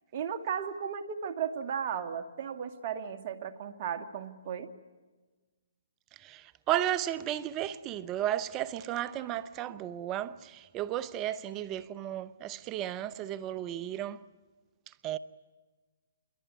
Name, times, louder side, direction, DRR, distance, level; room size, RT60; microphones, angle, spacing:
voice 1, 0.1-4.7, right 7 dB, 45° right, 2.0 m, -35 dB
voice 2, 6.2-14.2 14.9-15.2, right 12 dB, 25° right, 0.9 m, -34 dB
27.0 x 23.0 x 9.6 m
hypercardioid pair, 140°, 0 cm